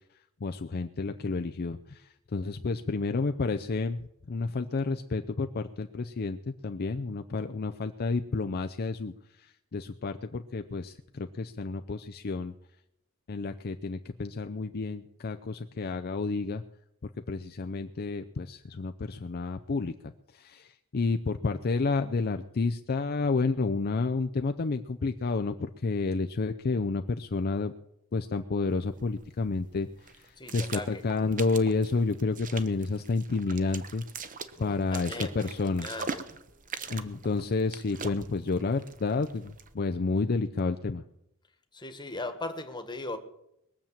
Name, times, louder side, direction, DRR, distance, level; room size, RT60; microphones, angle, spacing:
voice 1, 0.4-4.0 4.3-6.4 6.6-12.5 13.3-16.6 17.0-27.7 28.1-29.9 30.1-34.0 34.6-35.9 36.9-41.0, left 3 dB, 45° left, 7 dB, 0.5 m, -30 dB
sound 1, 28.7-39.7, right 5 dB, 35° right, 0.9 m, -43 dB
voice 2, 30.4-31.0 34.5-35.5 35.8-36.2 41.7-43.2, left 2 dB, 20° left, 7 dB, 1.4 m, -38 dB
21.0 x 7.3 x 7.4 m, 0.80 s
head